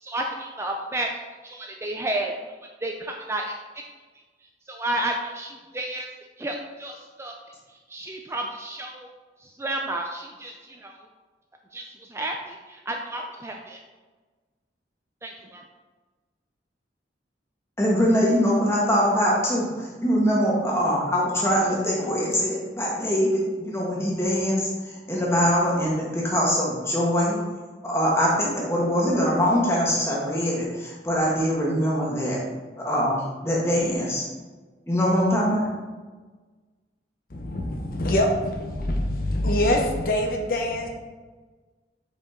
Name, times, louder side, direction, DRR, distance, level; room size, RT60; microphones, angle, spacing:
voice 1, 0.0-1.1 1.4-2.3 2.8-3.8 4.7-6.1 6.4-7.3 7.9-9.1 9.4-11.0 11.7-11.8 12.1-13.8 15.2-15.6, right 1 dB, 15° right, 1 dB, 0.4 m, -31 dB
voice 2, 17.8-27.4 27.8-32.4 32.8-34.3 34.9-35.7, equal, 15° left, -4 dB, 1.6 m, -23 dB
voice 3, 39.4-39.8 40.1-40.8, left 1 dB, 50° left, 2 dB, 0.8 m, -22 dB
7.0 x 5.2 x 3.8 m, 1.3 s
head